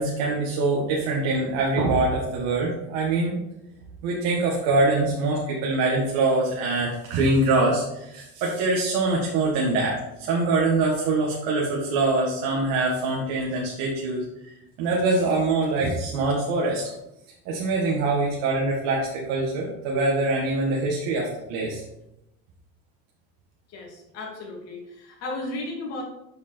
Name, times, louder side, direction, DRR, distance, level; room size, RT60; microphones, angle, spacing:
voice 1, 0.0-3.4 4.0-14.2 14.8-16.9 17.5-21.8, right 3 dB, 80° right, -3 dB, 1.9 m, -24 dB
voice 2, 23.7-26.0, left 2 dB, 50° left, -1 dB, 2.8 m, -34 dB
8.3 x 5.3 x 4.5 m, 0.86 s
cardioid pair, 140°, 32 cm